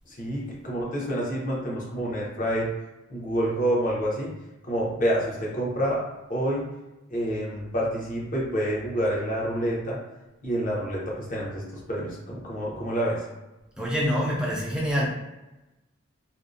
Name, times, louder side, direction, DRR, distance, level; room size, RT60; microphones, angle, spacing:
voice 1, 0.1-2.7 3.1-4.3 4.6-6.0 6.3-6.7 7.1-10.0 10.4-13.2, equal, 40° left, -4 dB, 0.7 m, -28 dB
voice 2, 13.8-15.1, equal, 5° right, -4 dB, 0.3 m, -25 dB
2.6 x 2.0 x 2.4 m, 1.0 s
head